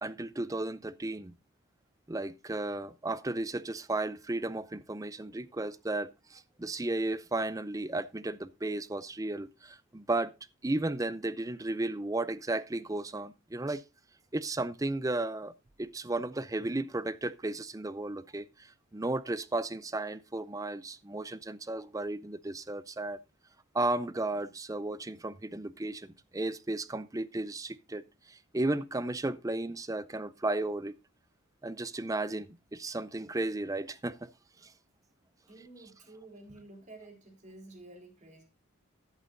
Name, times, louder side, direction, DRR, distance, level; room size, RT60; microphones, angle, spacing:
voice 1, 0.0-1.3 2.1-10.3 10.6-13.8 14.3-15.5 15.8-23.2 23.7-30.9 31.6-34.3 34.6-34.7, right 2 dB, 15° right, 0.5 m, -34 dB
voice 2, 35.5-38.4, right 2 dB, 35° right, 3.8 m, -51 dB
13.5 x 11.5 x 2.6 m
head